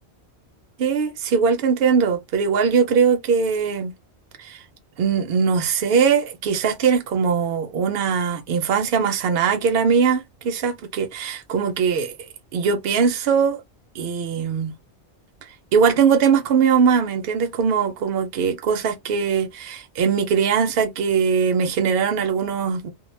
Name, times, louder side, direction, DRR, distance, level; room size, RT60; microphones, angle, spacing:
voice 1, 0.8-4.0 4.4-4.6 5.0-12.1 12.5-13.6 13.9-14.7 15.7-22.9, right 6 dB, 65° right, 0.7 m, -21 dB
2.2 x 2.0 x 3.0 m
omnidirectional pair, 1.2 m